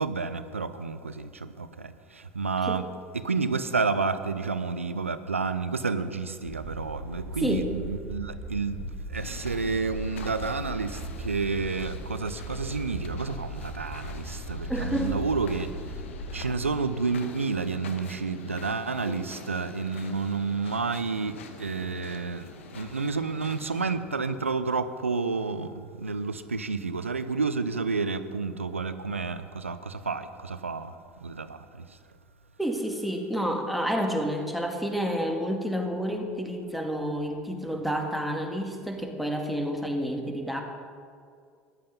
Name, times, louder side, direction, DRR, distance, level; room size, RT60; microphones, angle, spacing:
voice 1, 0.0-2.9 3.1-16.0 16.3-32.0, right 4 dB, 90° right, 12 dB, 0.6 m, -30 dB
sound 1, 6.5-16.7, right 1 dB, 25° right, 3.9 m, -38 dB
sound 2, 9.1-23.9, left 6 dB, 75° left, 1.1 m, -45 dB
voice 2, 14.7-15.2 19.0-19.2 32.6-40.6, equal, ahead, 2 dB, 2.1 m, -29 dB
14.0 x 11.0 x 5.4 m, 2.2 s
figure-of-eight pair, 70°, 7 cm